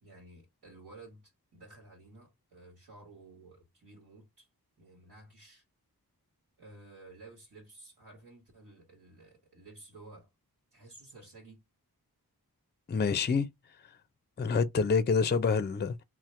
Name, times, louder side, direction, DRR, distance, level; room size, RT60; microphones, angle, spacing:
voice 1, 0.0-4.5 4.8-5.6 6.6-10.3 10.7-11.6, right 2 dB, 80° right, 1.3 m, -53 dB
voice 2, 12.9-13.5 14.4-16.0, left 5 dB, 30° left, 0.4 m, -27 dB
2.8 x 2.1 x 3.1 m
wide cardioid pair, 45°, 38 cm